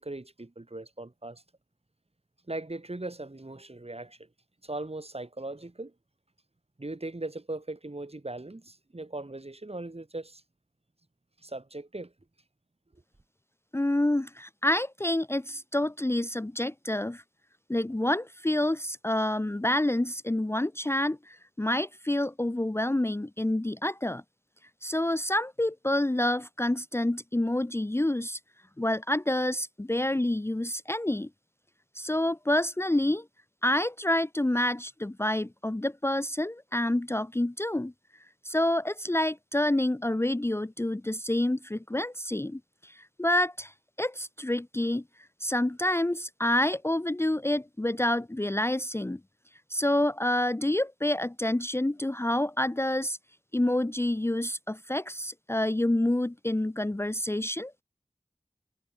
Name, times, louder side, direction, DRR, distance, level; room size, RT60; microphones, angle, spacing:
voice 1, 0.0-1.4 2.5-4.2 4.6-5.9 6.8-10.4 11.4-12.1, right 2 dB, 50° right, 4.3 m, -39 dB
voice 2, 13.7-17.2 17.7-24.2 24.8-28.4 28.8-31.3 32.0-33.3 33.6-37.9 38.4-43.7 44.0-45.0 45.4-49.2 49.7-53.2 53.5-57.7, left 1 dB, 20° left, 0.6 m, -28 dB
wide cardioid pair, 50°, 13 cm